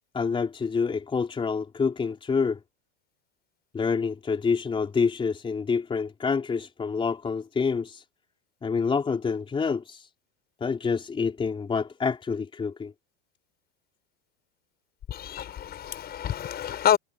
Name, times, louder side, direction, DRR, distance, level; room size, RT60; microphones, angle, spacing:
voice 1, 0.1-2.6 3.7-8.0 8.6-10.1 10.6-12.9, left 5 dB, 15° left, 4.3 m, -27 dB
voice 2, 15.1-17.0, left 10 dB, 30° left, 6.9 m, -27 dB
supercardioid pair, 140°, 30 cm